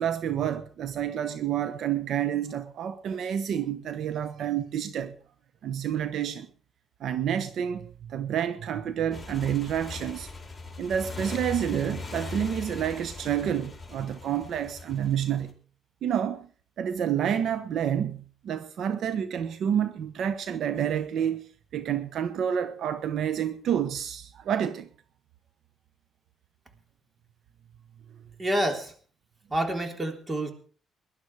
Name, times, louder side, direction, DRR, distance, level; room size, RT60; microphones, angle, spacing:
voice 1, 0.0-5.1 5.6-6.5 7.0-10.3 10.8-15.5 16.0-16.5 16.8-21.5 21.7-24.9, right 9 dB, 70° right, 1.1 m, -29 dB
Motorcycle, 9.1-15.5, left 3 dB, 15° left, 4.4 m, -40 dB
voice 2, 28.4-28.9 29.5-30.5, right 1 dB, 20° right, 3.6 m, -28 dB
20.0 x 11.5 x 4.9 m
cardioid pair, 90°, 0 cm